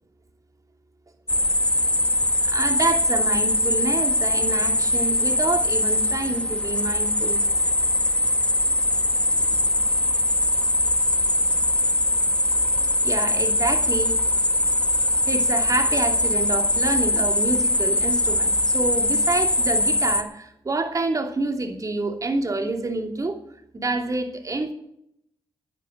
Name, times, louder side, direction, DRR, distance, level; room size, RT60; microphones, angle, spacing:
sound 1, 1.3-20.2, left 1 dB, 10° left, 1.3 m, -22 dB
voice 1, 2.4-7.4 13.0-14.1 15.2-23.4 23.7-24.7, right 2 dB, 40° right, 4 dB, 2.8 m, -27 dB
11.5 x 9.9 x 7.6 m, 0.74 s
supercardioid pair, 50°, 9 cm